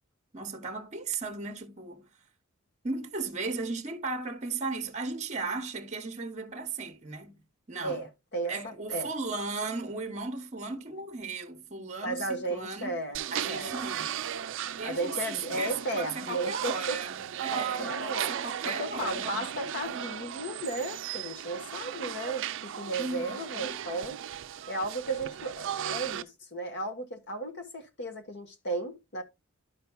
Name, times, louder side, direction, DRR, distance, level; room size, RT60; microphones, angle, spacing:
voice 1, 0.3-2.1 2.8-8.0 8.5-13.0 13.3-14.1 14.8-19.5 23.0-23.8, right 4 dB, 35° right, 0.8 m, -36 dB
voice 2, 7.8-9.1 12.0-13.8 14.8-17.0 17.5-18.4 18.6-24.2 24.7-29.2, right 2 dB, 55° left, 1.2 m, -35 dB
sound 1, 13.1-26.2, right 9 dB, 65° right, 0.4 m, -36 dB
11.5 x 5.7 x 2.2 m
head